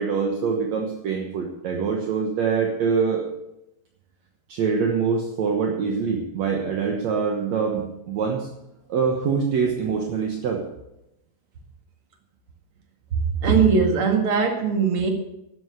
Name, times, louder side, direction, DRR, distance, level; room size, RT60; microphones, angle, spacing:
voice 1, 0.0-3.3 4.5-8.5 8.9-10.6, right 5 dB, 65° right, 2 dB, 1.8 m, -24 dB
voice 2, 13.1-15.1, right 5 dB, 40° right, 3 dB, 2.2 m, -20 dB
12.5 x 9.6 x 8.2 m, 0.89 s
omnidirectional pair, 4.8 m